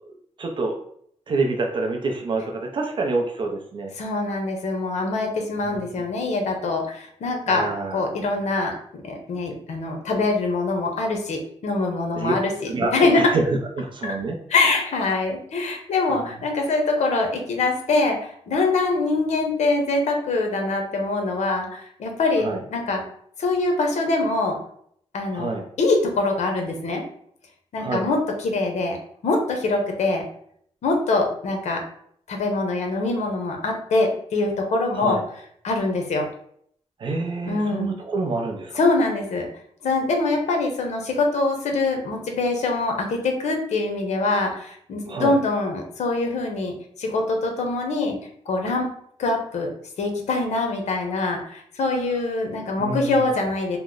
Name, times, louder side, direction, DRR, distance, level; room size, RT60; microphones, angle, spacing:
voice 1, 0.4-0.7 1.3-3.9 5.6-5.8 7.5-8.1 12.2-12.3 12.7-14.4 22.4-22.6 25.3-25.6 27.8-28.0 34.9-35.2 37.0-38.7 45.1-45.4 52.8-53.1, right 3 dB, 45° right, 2 dB, 0.4 m, -26 dB
voice 2, 4.0-8.7 9.0-13.3 14.0-14.2 14.5-23.0 23.4-24.6 25.1-25.5 25.8-27.0 27.7-29.0 29.2-30.2 30.8-31.8 32.3-35.2 35.6-36.3 37.4-37.9 38.8-39.5 39.8-48.2 48.5-48.9 49.2-49.7 50.0-53.8, left 3 dB, 75° left, 3 dB, 0.7 m, -24 dB
3.0 x 2.0 x 3.7 m, 0.66 s
wide cardioid pair, 140°, 12 cm